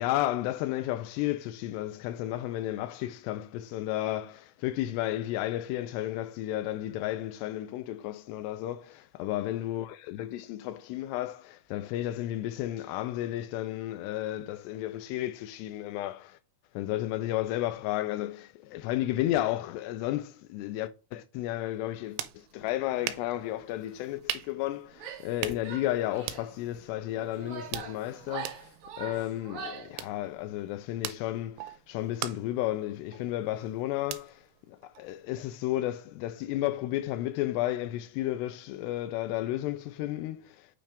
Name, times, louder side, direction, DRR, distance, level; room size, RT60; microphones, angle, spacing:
voice 1, 0.0-16.4 16.8-40.7, left 14 dB, 80° left, 2.5 m, -33 dB
sound 1, 21.7-35.5, right 13 dB, 90° right, 3.0 m, -43 dB
Female speech woman speaking / Yell, 24.9-25.4 25.7-26.5 27.2-30.0, right 6 dB, 60° right, 3.0 m, -42 dB
8.8 x 3.2 x 5.1 m
omnidirectional pair, 5.2 m